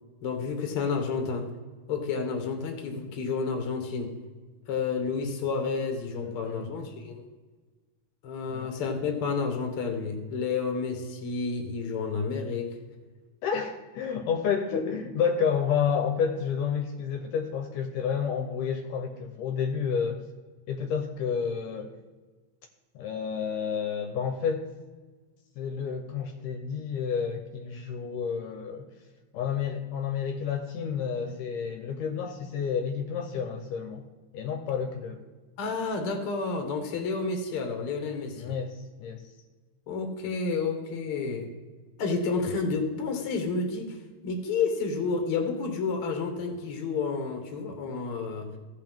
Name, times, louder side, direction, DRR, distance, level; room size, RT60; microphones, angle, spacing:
voice 1, 0.2-1.5 1.9-4.1 4.7-7.2 8.2-12.8 35.6-38.5 39.9-41.5 42.0-44.0 44.2-48.5, left 4 dB, 55° left, 4 dB, 1.8 m, -30 dB
voice 2, 6.2-6.7 8.5-8.7 13.4-20.2 20.7-21.9 23.0-24.7 25.6-28.9 29.3-34.0 34.3-35.2 38.4-39.2, left 7 dB, 75° left, 4 dB, 2.2 m, -30 dB
15.5 x 5.7 x 3.6 m, 1.3 s
omnidirectional pair, 4.0 m